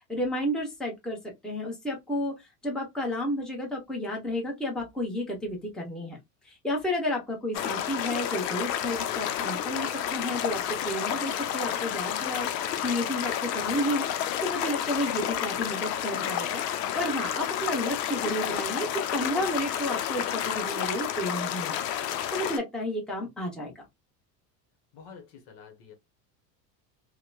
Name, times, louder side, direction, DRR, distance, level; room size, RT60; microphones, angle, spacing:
voice 1, 0.1-1.2 1.4-6.2 6.4-12.5 12.8-14.1 14.4-16.6 16.9-18.9 19.1-21.8 22.3-23.8, left 1 dB, ahead, 1.0 m, -31 dB
sound 1, 7.5-22.6, left 10 dB, 80° left, 0.6 m, -30 dB
voice 2, 24.9-25.9, left 6 dB, 55° left, 1.0 m, -48 dB
2.9 x 2.2 x 2.3 m
hypercardioid pair, 90°, 49 cm